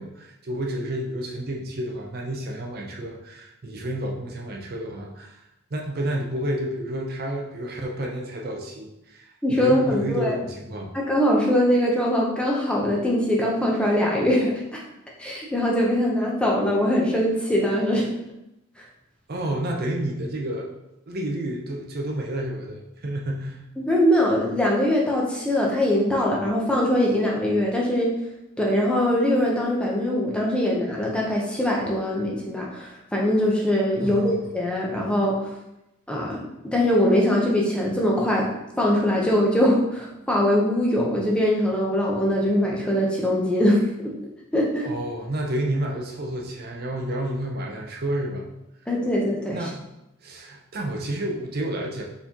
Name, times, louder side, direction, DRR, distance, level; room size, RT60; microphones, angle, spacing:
voice 1, 0.0-5.4 5.7-10.9 19.3-20.7 21.1-23.6 34.0-34.3 44.8-48.5 49.5-49.8 50.2-52.0, right 1 dB, 45° right, 0 dB, 0.6 m, -30 dB
voice 2, 9.4-10.4 10.9-14.8 15.2-18.1 23.8-28.1 28.6-35.5 36.1-38.5 38.8-43.8 44.5-44.9 48.9-49.7, left 1 dB, 5° left, -3 dB, 0.7 m, -22 dB
4.3 x 4.1 x 2.9 m, 0.89 s
head